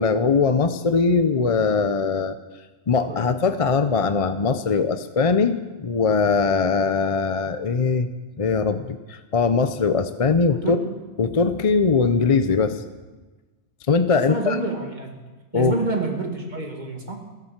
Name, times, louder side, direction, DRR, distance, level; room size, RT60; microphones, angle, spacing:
voice 1, 0.0-2.4 2.9-5.5 5.8-8.1 8.4-10.8 11.2-12.8 13.9-14.6 15.5-15.8, left 4 dB, 40° left, 9 dB, 0.5 m, -21 dB
voice 2, 10.5-11.0 14.3-15.2 15.5-17.3, right 3 dB, 35° right, 2 dB, 2.2 m, -28 dB
14.0 x 12.0 x 7.3 m, 1.2 s
omnidirectional pair, 1.3 m